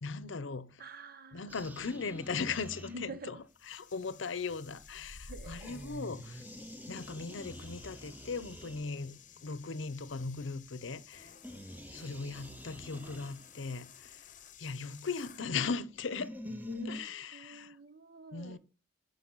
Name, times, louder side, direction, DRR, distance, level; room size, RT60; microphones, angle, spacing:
voice 1, 0.0-0.8 1.3-3.4 3.7-6.5 6.9-11.3 11.9-14.3 14.6-16.3 16.9-17.8 18.3-18.6, left 4 dB, 75° left, 0.7 m, -38 dB
voice 2, 0.8-1.6 2.8-3.4 5.3-6.0 16.4-18.6, equal, 50° right, 0.8 m, -46 dB
sound 1, 1.5-3.4 5.6-9.3 11.4-13.7 15.9-17.0, equal, 10° right, 0.7 m, -47 dB
sound 2, 3.5-15.5, left 6 dB, 40° left, 0.9 m, -54 dB
11.5 x 5.2 x 4.0 m
head